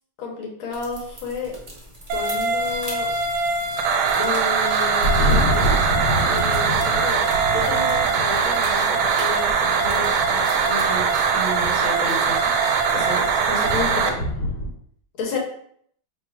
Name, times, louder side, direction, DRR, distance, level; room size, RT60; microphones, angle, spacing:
voice 1, 0.2-1.6 2.1-3.1 4.1-5.8 6.2-12.5 12.9-14.4 15.2-15.4, left 4 dB, 90° left, 0 dB, 1.7 m, -31 dB
sound 1, 0.7-13.9, right 1 dB, 35° right, 0.6 m, -42 dB
sound 2, 2.1-14.1, right 5 dB, 90° right, 1.4 m, -21 dB
Thunder, 4.8-14.7, equal, 70° left, 1.6 m, -28 dB
3.7 x 2.3 x 4.5 m, 0.65 s
omnidirectional pair, 2.1 m